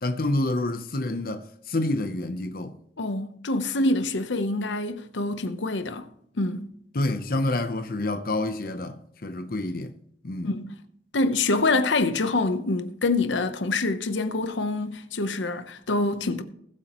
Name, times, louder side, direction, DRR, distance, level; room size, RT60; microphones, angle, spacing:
voice 1, 0.0-2.8 6.9-9.9 10.2-10.5, left 2 dB, 50° left, 0.8 m, -28 dB
voice 2, 3.0-6.1 6.4-6.7 10.4-10.7 11.1-16.4, left 2 dB, 90° left, 0.9 m, -26 dB
20.5 x 8.3 x 3.1 m
head